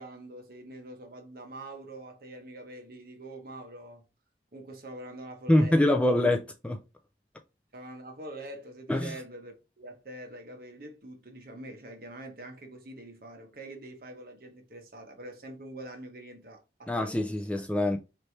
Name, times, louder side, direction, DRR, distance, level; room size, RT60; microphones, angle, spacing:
voice 1, 0.0-4.0 4.5-6.1 7.7-17.1, right 1 dB, 55° right, 1.0 m, -45 dB
voice 2, 5.5-6.8 8.9-9.1 16.9-18.0, left 1 dB, 5° left, 0.3 m, -24 dB
4.3 x 3.2 x 2.7 m
head